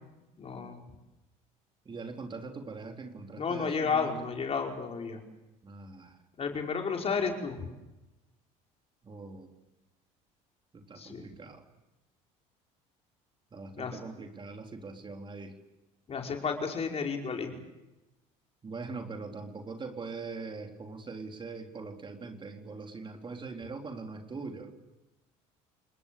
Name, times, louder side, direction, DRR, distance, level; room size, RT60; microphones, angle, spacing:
voice 1, 0.4-0.8 3.4-5.2 6.4-7.7 11.0-11.3 13.8-14.0 16.1-17.5, left 5 dB, 35° left, 2 dB, 5.2 m, -32 dB
voice 2, 1.9-4.2 5.6-6.2 9.0-9.5 10.7-11.6 13.5-15.5 18.6-24.7, right 4 dB, 30° right, 4 dB, 4.0 m, -42 dB
29.5 x 20.0 x 8.6 m, 1.0 s
supercardioid pair, 85°, 17 cm